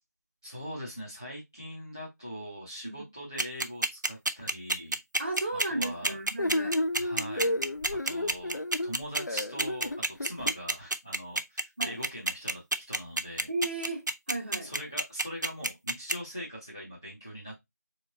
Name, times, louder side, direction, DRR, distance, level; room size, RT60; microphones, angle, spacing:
voice 1, 0.4-5.0 5.5-6.2 6.9-7.5 7.9-13.5 14.6-17.5, equal, 10° left, 0.5 m, -42 dB
sound 1, 3.4-16.1, right 2 dB, 85° right, 0.6 m, -28 dB
voice 2, 5.2-6.8 11.8-12.0 13.5-14.7, right 2 dB, 35° right, 1.1 m, -34 dB
sound 2, 6.4-10.5, left 1 dB, 70° left, 0.6 m, -31 dB
4.1 x 3.1 x 2.5 m
figure-of-eight pair, 170°, 10 cm